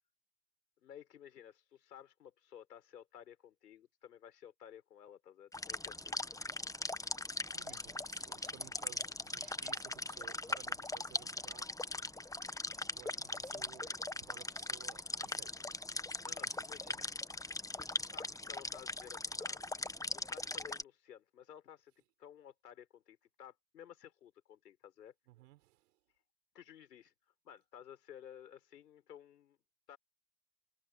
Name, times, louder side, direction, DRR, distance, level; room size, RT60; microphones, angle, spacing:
voice 1, 0.8-6.2 16.2-17.1 17.7-19.6 20.1-21.9 22.2-25.1 26.5-27.1 27.4-29.6 29.9-30.0, left 9 dB, 80° left, 5.4 m, -55 dB
sound 1, 5.5-20.8, left 2 dB, 5° left, 1.6 m, -40 dB
voice 2, 7.5-11.7 12.7-15.5 16.4-16.6 16.9-17.0 25.3-26.0, right 17 dB, 70° right, 5.3 m, -58 dB
figure-of-eight pair, 65°, 47 cm